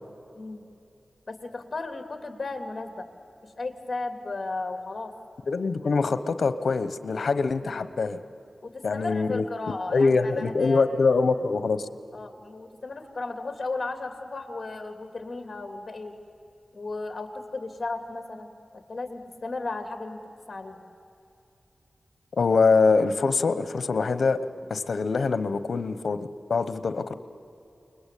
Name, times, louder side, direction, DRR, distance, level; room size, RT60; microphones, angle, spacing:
voice 1, 1.3-3.0 3.4-5.1 7.6-7.8 8.6-10.8 12.1-16.1 16.7-20.2 20.5-20.8, left 3 dB, 45° left, 7 dB, 2.8 m, -35 dB
voice 2, 5.5-8.2 8.8-9.4 9.9-11.9 22.4-24.4 24.7-27.1, left 4 dB, 80° left, 13 dB, 1.1 m, -24 dB
29.0 x 21.5 x 8.5 m, 2.7 s
wide cardioid pair, 90°, 0 cm